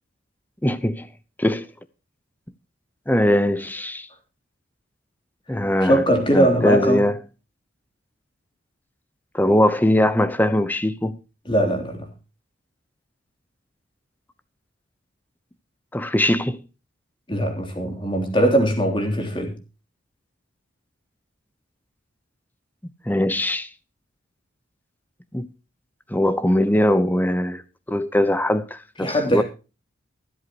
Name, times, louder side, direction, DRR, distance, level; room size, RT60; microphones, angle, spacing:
voice 1, 0.6-1.1 1.4-1.7 3.1-4.1 5.5-6.0 6.3-7.1 9.3-11.2 15.9-16.6 23.1-23.7 25.3-25.5 26.1-27.6 27.9-29.4, left 1 dB, 10° left, 0.8 m, -21 dB
voice 2, 5.8-7.1 11.5-12.1 17.3-19.6 29.0-29.4, right 1 dB, 25° left, 3.4 m, -21 dB
24.0 x 8.1 x 3.0 m
head